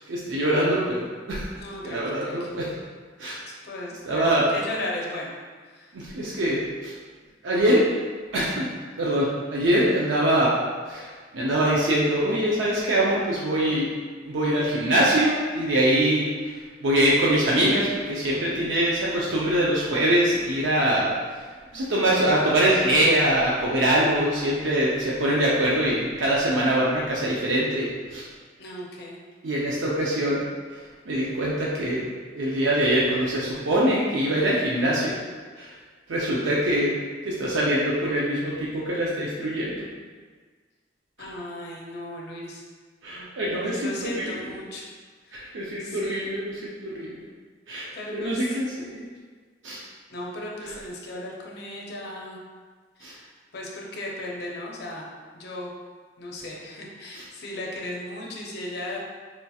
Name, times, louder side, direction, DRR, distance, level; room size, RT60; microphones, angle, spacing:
voice 1, 0.1-1.5 1.8-2.7 3.2-3.4 4.1-4.5 5.9-6.9 7.4-7.9 8.3-8.7 9.0-10.6 10.8-13.9 14.2-28.3 29.4-30.4 30.7-32.0 32.3-35.2 35.6-35.7 36.1-36.9 37.2-39.9 43.0-44.6 45.3-47.2 47.7-49.1 49.6-49.8 53.0-53.1 57.1-57.2, right 1 dB, 90° right, -5 dB, 0.5 m, -24 dB
voice 2, 1.6-2.5 3.5-5.3 5.6-6.0 28.6-29.2 41.2-42.6 43.1-43.3 43.6-44.8 45.2-45.5 45.8-46.4 47.9-48.6 49.7-52.4 53.0-55.7 56.2-59.0, left 1 dB, 60° left, -3 dB, 0.5 m, -36 dB
4.3 x 2.7 x 2.3 m, 1.5 s
head